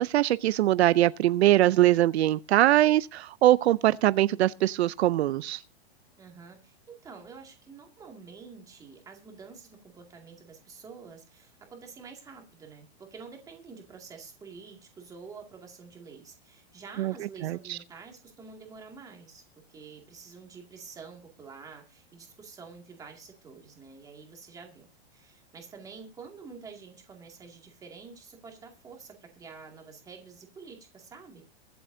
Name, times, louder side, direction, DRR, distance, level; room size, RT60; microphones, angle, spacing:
voice 1, 0.0-5.6 17.0-17.1 17.4-17.8, right 14 dB, 80° right, 0.6 m, -22 dB
voice 2, 6.2-31.4, right 5 dB, 10° right, 2.2 m, -48 dB
23.0 x 7.8 x 2.7 m
supercardioid pair, 170°, 32 cm